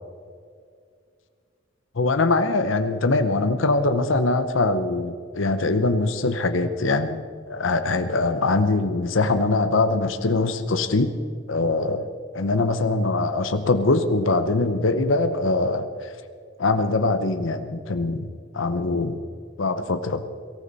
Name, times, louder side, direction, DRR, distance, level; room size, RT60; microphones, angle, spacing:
voice 1, 2.0-11.1 11.5-12.0 12.3-16.1 16.6-18.3 18.5-19.2 19.6-20.2, left 3 dB, 75° left, 9 dB, 0.9 m, -22 dB
23.0 x 14.5 x 4.1 m, 2.2 s
head